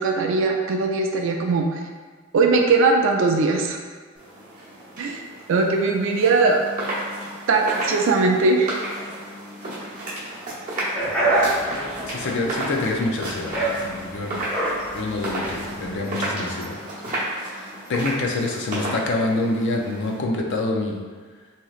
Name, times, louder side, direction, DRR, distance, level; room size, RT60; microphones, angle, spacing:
voice 1, 0.0-1.7 2.3-3.8 5.0-5.2 5.5-6.6 7.5-8.8, right 3 dB, 65° right, 3 dB, 0.4 m, -20 dB
sound 1, 4.1-20.2, right 1 dB, 40° right, 0.9 m, -33 dB
sound 2, 10.9-16.0, right 2 dB, 5° left, 0.8 m, -26 dB
voice 2, 12.1-14.4 14.9-16.8 17.1-17.2 17.5-21.0, left 2 dB, 55° left, 0 dB, 0.4 m, -26 dB
3.1 x 2.8 x 2.3 m, 1.5 s
head